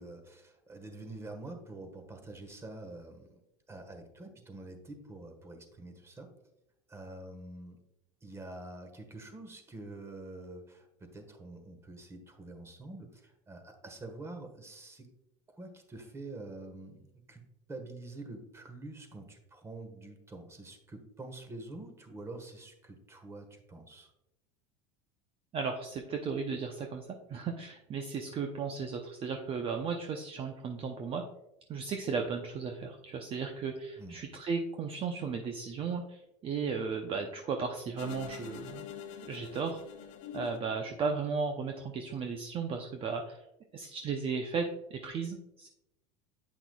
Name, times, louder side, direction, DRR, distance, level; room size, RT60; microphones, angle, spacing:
voice 1, 0.0-3.4 3.7-6.3 6.9-7.8 8.2-15.1 15.6-24.1 34.0-34.2, right 2 dB, 15° right, 5 dB, 1.4 m, -46 dB
voice 2, 25.5-31.2 31.7-38.9 39.3-39.8 40.3-43.4 43.7-45.7, right 5 dB, 35° right, 4 dB, 0.7 m, -35 dB
sound 1, 38.0-41.3, left 9 dB, 80° left, 0.8 m, -45 dB
8.3 x 5.8 x 2.3 m, 0.86 s
supercardioid pair, 100°, 16 cm